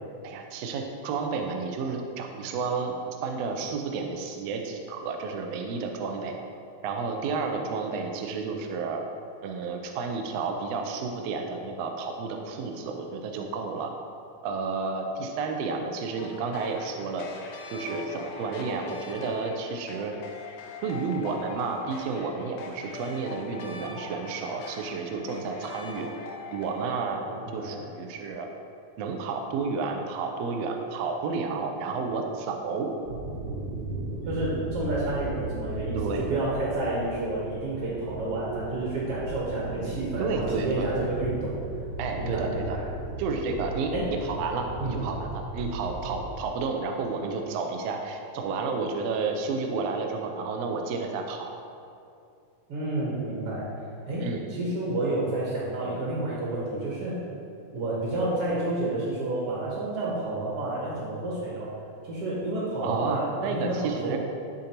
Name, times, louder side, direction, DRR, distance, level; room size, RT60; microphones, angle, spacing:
voice 1, 0.2-2.9 3.2-6.3 6.8-9.0 9.4-13.9 14.4-17.3 17.7-20.1 20.8-26.1 26.5-27.2 27.5-28.5 29.0-32.9 35.9-36.3 40.2-40.9 42.0-42.8 43.2-43.9 44.2-51.5 54.2-54.5 62.8-64.2, right 4 dB, 90° right, 3 dB, 1.4 m, -31 dB
sound 1, 16.2-27.0, left 5 dB, 80° left, 2.0 m, -42 dB
voice 2, 27.3-28.0 34.3-41.6 42.2-42.9 43.9-44.1 44.8-45.0 52.7-53.7 54.1-57.1 57.7-61.8 62.0-64.2, right 2 dB, 60° right, -6 dB, 1.7 m, -30 dB
sound 2, 33.1-46.3, right 2 dB, 75° right, 1.8 m, -36 dB
11.5 x 3.8 x 2.9 m, 2.5 s
omnidirectional pair, 3.6 m